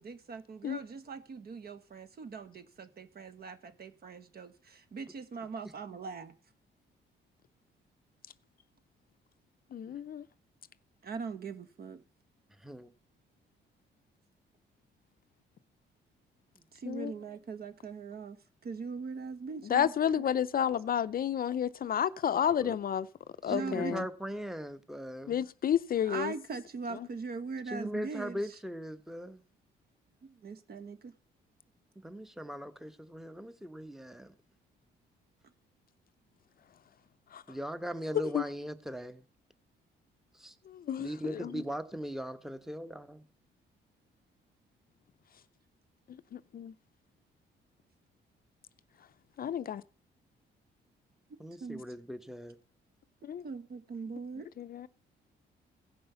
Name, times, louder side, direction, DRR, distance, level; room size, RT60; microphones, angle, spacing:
voice 1, 0.0-6.3 11.0-12.0 16.7-18.4 18.6-20.2 23.5-23.9 26.0-28.6 30.2-31.1 51.3-51.8 53.2-54.5, right 4 dB, 50° right, 1.4 m, -41 dB
voice 2, 9.7-10.2 16.8-17.1 19.6-23.1 23.4-24.1 25.3-26.3 37.3-37.4 38.1-38.4 40.7-41.6 46.1-46.7 49.4-49.8 53.2-53.4 54.6-54.9, left 9 dB, 45° left, 0.5 m, -31 dB
voice 3, 12.6-12.9 22.6-22.8 23.5-25.4 27.7-29.4 32.0-34.3 37.5-39.2 40.3-40.5 41.0-43.2 51.4-52.6, equal, ahead, 1.1 m, -39 dB
16.5 x 5.5 x 6.8 m
cardioid pair, 90°, 20 cm